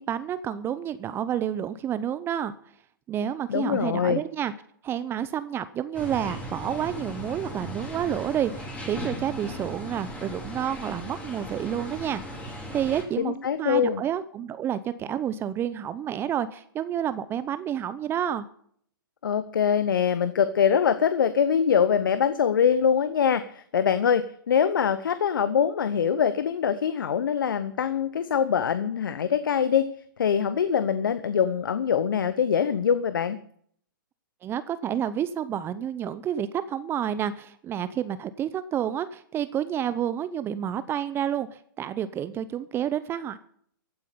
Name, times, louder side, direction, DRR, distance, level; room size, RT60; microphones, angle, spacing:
voice 1, 0.1-2.5 3.1-4.5 4.8-12.2 12.7-18.5 34.4-43.4, right 9 dB, 20° right, 14 dB, 0.7 m, -29 dB
voice 2, 3.5-4.2 13.2-14.0 19.2-29.9 30.2-33.4, left 7 dB, 70° left, 13 dB, 1.0 m, -23 dB
sound 1, 5.9-13.0, equal, 10° left, 3.4 m, -37 dB
15.0 x 9.3 x 6.8 m, 0.62 s
hypercardioid pair, 125°, 12 cm